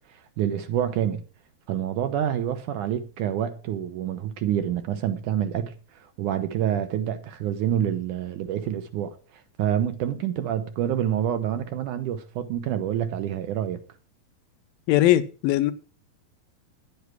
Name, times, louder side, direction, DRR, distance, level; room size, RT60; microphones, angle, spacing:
voice 1, 0.1-1.2 1.7-13.8, right 10 dB, 70° right, 2.2 m, -27 dB
voice 2, 14.9-15.7, left 14 dB, 80° left, 2.5 m, -20 dB
10.5 x 8.2 x 5.9 m
omnidirectional pair, 4.2 m